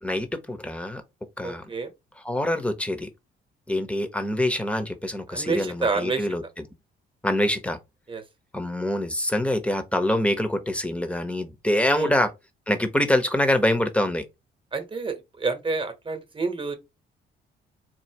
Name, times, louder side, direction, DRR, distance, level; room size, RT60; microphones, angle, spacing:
voice 1, 0.0-1.0 1.4-1.7 2.2-3.1 3.7-6.4 7.2-7.8 8.5-12.3 12.7-14.2, left 1 dB, 5° left, 0.8 m, -25 dB
voice 2, 1.4-1.9 5.3-6.3 8.1-8.2 11.9-12.1 14.7-16.8, right 4 dB, 25° right, 1.1 m, -28 dB
4.2 x 2.7 x 2.8 m
cardioid pair, 90°, 20 cm